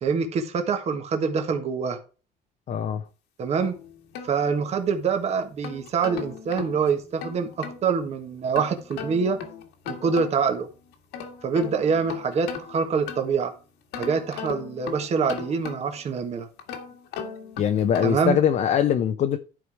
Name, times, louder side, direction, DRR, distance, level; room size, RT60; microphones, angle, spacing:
voice 1, 0.0-2.0 3.4-3.8 4.2-9.4 9.9-10.7 11.4-13.5 13.9-16.5 18.0-18.4, right 5 dB, 40° right, 1.5 m, -25 dB
voice 2, 2.7-3.0 17.6-19.4, left 9 dB, 45° left, 0.7 m, -22 dB
sound 1, 3.6-5.0 5.4-7.8 8.5-10.6 10.9-13.5 13.9-16.1 16.6-18.3, left 7 dB, 80° left, 1.8 m, -38 dB
11.0 x 4.9 x 4.8 m
cardioid pair, 140°, 17 cm